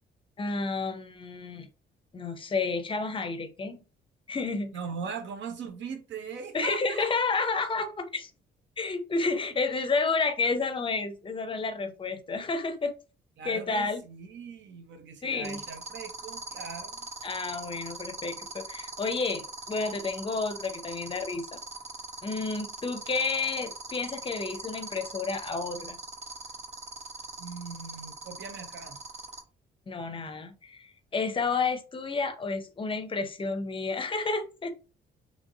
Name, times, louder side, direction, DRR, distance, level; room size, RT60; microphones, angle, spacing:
voice 1, 0.4-1.7 2.1-3.8 4.3-4.7 6.5-8.3 8.8-12.9 13.4-14.0 15.2-15.6 17.2-21.5 22.2-26.0 29.9-34.7, left 4 dB, 25° left, 0.5 m, -30 dB
voice 2, 4.7-7.1 13.4-17.0 27.4-29.0, right 6 dB, 65° right, 0.7 m, -40 dB
sound 1, 15.4-29.4, right 3 dB, 35° right, 0.7 m, -40 dB
2.9 x 2.6 x 2.6 m
cardioid pair, 90°, 20 cm